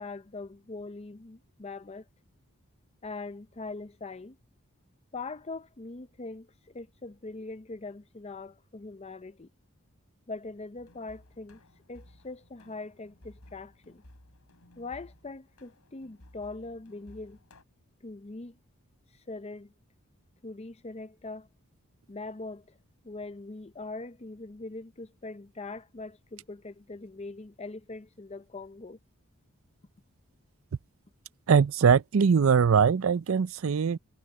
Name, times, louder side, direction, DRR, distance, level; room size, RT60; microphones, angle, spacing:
voice 1, 0.0-2.1 3.0-4.4 5.1-9.5 10.3-11.6 11.9-14.0 14.8-17.4 18.0-18.6 19.1-19.7 20.4-21.5 22.1-22.8 23.0-29.0, left 3 dB, 30° left, 0.6 m, -42 dB
sound 1, 10.8-17.6, left 1 dB, 80° left, 4.0 m, -57 dB
voice 2, 31.5-34.0, right 6 dB, 60° right, 0.4 m, -22 dB
head